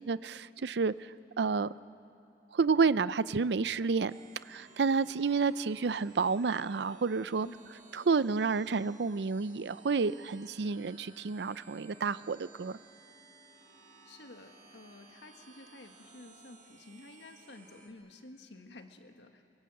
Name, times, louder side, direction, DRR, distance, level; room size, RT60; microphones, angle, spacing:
voice 1, 0.1-1.1 1.4-1.7 2.5-4.1 4.5-7.5 7.9-12.8, right 5 dB, 70° right, 17 dB, 0.5 m, -30 dB
sound 1, 4.1-17.9, right 3 dB, 45° right, 2.7 m, -58 dB
voice 2, 7.4-7.7 14.1-19.4, left 2 dB, 80° left, 5 dB, 1.7 m, -52 dB
23.5 x 23.5 x 7.8 m, 2.6 s
head